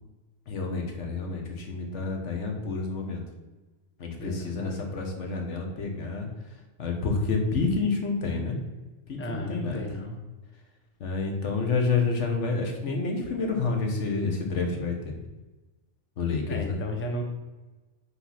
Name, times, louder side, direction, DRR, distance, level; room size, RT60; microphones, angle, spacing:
voice 1, 0.5-3.2 4.0-6.3 6.8-8.6 9.1-9.8 11.0-15.2 16.2-16.8, left 4 dB, 75° left, 2 dB, 1.4 m, -29 dB
voice 2, 4.2-4.8 9.2-10.2 14.7-15.0 16.5-17.2, left 1 dB, 15° left, 3 dB, 0.6 m, -35 dB
5.9 x 3.9 x 5.7 m, 1.2 s
omnidirectional pair, 1.2 m